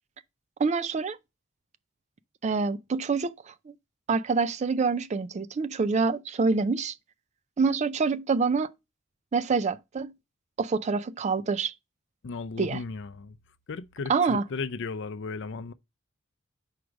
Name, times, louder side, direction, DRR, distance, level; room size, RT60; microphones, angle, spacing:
voice 1, 0.6-1.2 2.4-3.7 4.1-6.9 7.6-8.7 9.3-10.1 10.6-11.7 12.6-12.8 14.1-14.4, right 4 dB, 35° right, 0.4 m, -26 dB
voice 2, 12.2-13.4 13.7-15.7, left 4 dB, 60° left, 0.5 m, -35 dB
4.8 x 4.7 x 5.1 m
head